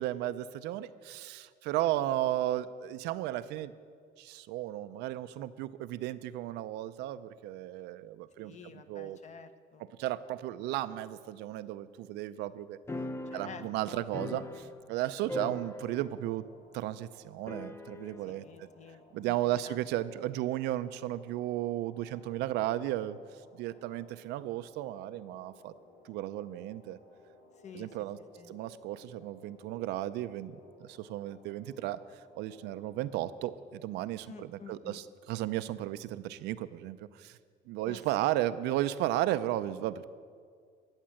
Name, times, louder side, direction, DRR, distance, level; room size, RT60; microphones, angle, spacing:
voice 1, 0.0-3.7 4.2-9.2 10.0-12.8 13.3-16.4 16.7-18.7 19.1-23.2 23.6-25.7 26.0-27.0 27.7-28.2 28.5-37.4 37.7-40.1, right 14 dB, 90° right, 12 dB, 0.5 m, -34 dB
voice 2, 8.4-9.9 13.3-14.4 18.3-19.4 19.6-19.8 27.6-28.1 28.4-28.5 34.3-35.0 37.8-38.3, left 6 dB, 45° left, 10 dB, 0.9 m, -50 dB
sound 1, 12.9-15.0 15.3-16.3 16.5-16.6 17.5-18.3, left 2 dB, 15° left, 0.7 m, -40 dB
sound 2, 13.8-33.7, left 3 dB, 65° left, 2.1 m, -60 dB
13.0 x 8.2 x 7.6 m, 2.1 s
cardioid pair, 110°, 17 cm